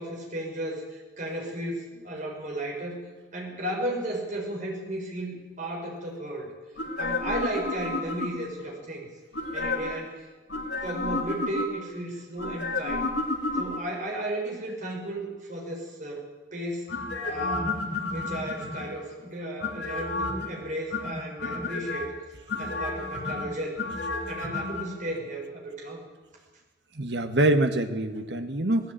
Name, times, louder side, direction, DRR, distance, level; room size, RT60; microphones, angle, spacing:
voice 1, 0.0-3.0 3.3-6.5 7.0-9.1 9.5-10.3 10.8-13.1 13.5-16.2 16.5-16.9 17.2-22.1 22.6-23.8 24.3-26.0, right 1 dB, 45° right, -2 dB, 6.1 m, -34 dB
sound 1, 6.8-8.6 9.3-10.1 10.5-11.9 12.4-14.1 16.9-19.0 19.6-20.5 20.9-22.1 22.5-24.9 25.1-25.2, left 2 dB, 75° left, 2.9 m, -31 dB
voice 2, 26.9-28.9, right 1 dB, 65° right, 7 dB, 1.7 m, -25 dB
18.5 x 16.0 x 9.2 m, 1.3 s
head